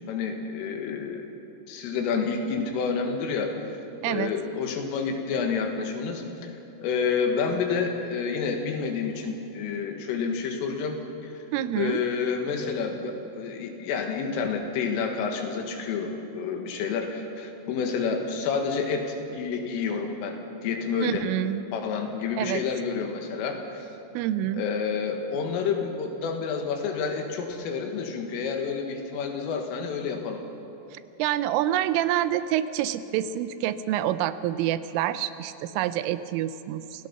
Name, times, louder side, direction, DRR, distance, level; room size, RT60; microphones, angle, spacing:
voice 1, 0.1-1.3 1.7-3.5 4.1-6.5 6.8-11.0 11.7-20.4 20.6-21.3 21.7-23.8 24.5-30.4, left 5 dB, 85° left, 3 dB, 4.3 m, -29 dB
voice 2, 11.5-12.0 21.0-21.6 22.4-22.6 24.1-24.6 30.9-37.1, right 12 dB, 85° right, 13 dB, 3.2 m, -27 dB
28.0 x 17.0 x 5.7 m, 2.9 s
omnidirectional pair, 5.7 m